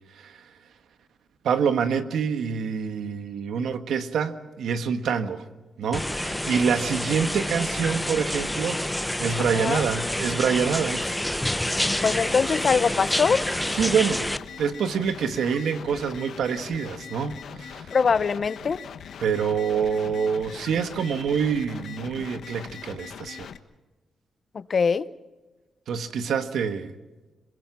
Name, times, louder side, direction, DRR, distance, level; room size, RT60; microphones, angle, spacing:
voice 1, 0.1-0.4 1.4-5.4 5.8-8.9 9.2-11.2 13.7-14.3 14.6-17.9 19.2-23.5 25.9-26.9, right 6 dB, 80° right, 9 dB, 1.5 m, -26 dB
sound 1, 5.9-14.4, left 1 dB, 5° left, 0.7 m, -28 dB
sound 2, 11.7-23.6, left 7 dB, 70° left, 1.2 m, -41 dB
voice 2, 12.0-13.4 17.9-18.8 24.5-25.1, left 5 dB, 40° left, 16 dB, 0.7 m, -22 dB
27.0 x 21.5 x 5.9 m, 1.2 s
wide cardioid pair, 145°, 0 cm